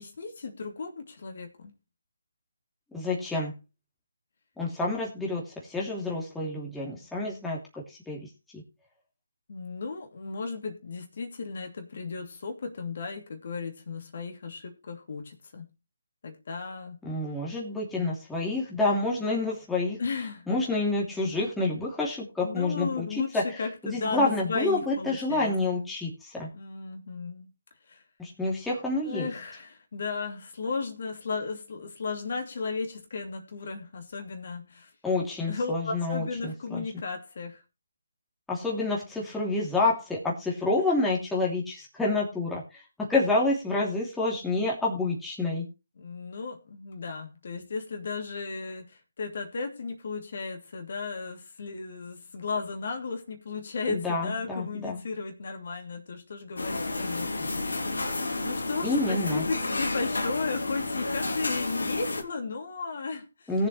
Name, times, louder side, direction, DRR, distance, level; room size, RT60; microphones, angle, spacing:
voice 1, 0.0-1.7 9.5-15.7 16.2-17.0 20.0-20.5 22.4-25.8 26.5-27.5 27.9-28.0 29.0-34.9 35.5-37.6 46.0-57.7 57.9-63.5, left 4 dB, 55° left, 4 dB, 2.8 m, -35 dB
voice 2, 2.9-3.5 4.6-8.2 8.5-8.6 17.0-20.0 20.5-23.1 23.3-23.4 23.8-26.5 28.2-29.3 35.0-36.8 38.5-45.6 53.9-55.0 58.8-59.4 63.5-63.7, left 2 dB, 5° left, -4 dB, 2.9 m, -28 dB
sound 1, 56.6-62.2, left 2 dB, 80° left, 2.7 m, -31 dB
19.5 x 7.2 x 3.2 m, 0.27 s
figure-of-eight pair, 155°, 0 cm